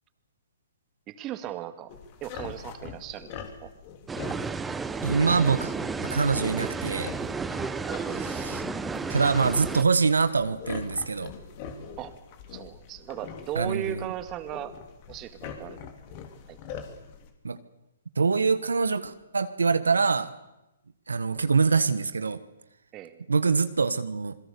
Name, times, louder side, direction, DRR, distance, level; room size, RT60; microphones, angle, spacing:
voice 1, 1.1-1.9 2.2-3.3 3.6-3.7 7.9-8.3 12.0-12.1 12.5-14.7 15.1-15.8 16.5-16.6 22.9-23.2, right 12 dB, 25° right, 10 dB, 2.1 m, -37 dB
sound 1, 1.9-17.3, left 6 dB, 40° left, 3.3 m, -43 dB
sound 2, 4.1-9.8, right 4 dB, 10° right, 1.1 m, -32 dB
voice 2, 5.0-5.7 6.0-7.1 8.2-8.6 9.1-11.3 13.5-14.1 17.4-17.6 18.2-20.3 21.1-22.4 23.3-24.4, right 4 dB, 85° right, 12 dB, 1.3 m, -24 dB
27.0 x 22.0 x 6.9 m, 0.93 s
hypercardioid pair, 130°, 0 cm